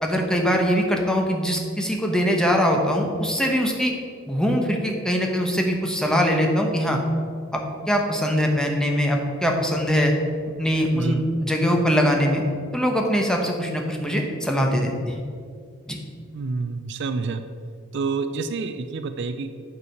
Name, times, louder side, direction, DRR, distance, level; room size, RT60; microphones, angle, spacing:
voice 1, 0.0-3.9 4.3-7.0 7.5-10.1 10.6-12.4 12.7-15.2 15.9-16.0, equal, 5° left, 1 dB, 0.9 m, -22 dB
voice 2, 16.3-17.4 17.9-19.5, right 4 dB, 60° right, 9 dB, 0.5 m, -28 dB
8.3 x 4.7 x 6.5 m, 2.1 s
head